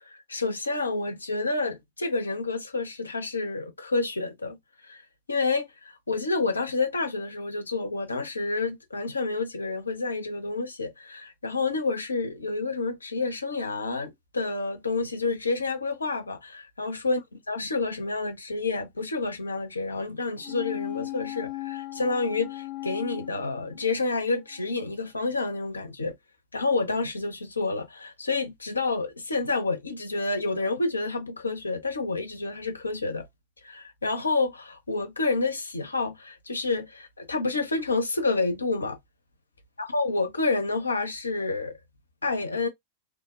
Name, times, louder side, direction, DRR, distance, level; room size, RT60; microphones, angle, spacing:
voice 1, 0.1-4.6 4.8-5.0 5.3-17.2 17.5-26.1 26.5-33.3 33.6-39.0 39.8-41.8 42.2-42.7, left 3 dB, 75° left, 0.6 m, -29 dB
sound 1, 20.4-24.2 24.6-24.7, left 18 dB, 35° left, 0.7 m, -37 dB
3.2 x 2.0 x 2.3 m
figure-of-eight pair, 90°, 0 cm